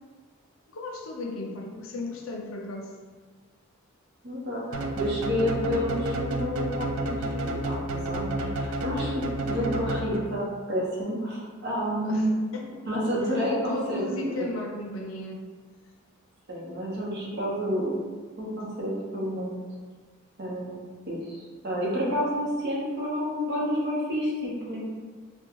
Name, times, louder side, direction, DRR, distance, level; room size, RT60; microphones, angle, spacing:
voice 1, 0.7-2.9 12.0-12.3 12.5-12.8 13.5-15.4, left 2 dB, 70° left, 1 dB, 0.5 m, -35 dB
voice 2, 4.2-12.3 12.9-14.5 16.5-17.9 18.4-19.6 20.4-24.8, equal, 55° right, -4 dB, 0.8 m, -30 dB
sound 1, 4.7-10.5, right 1 dB, 90° right, 0.4 m, -30 dB
3.5 x 2.2 x 3.0 m, 1.5 s
head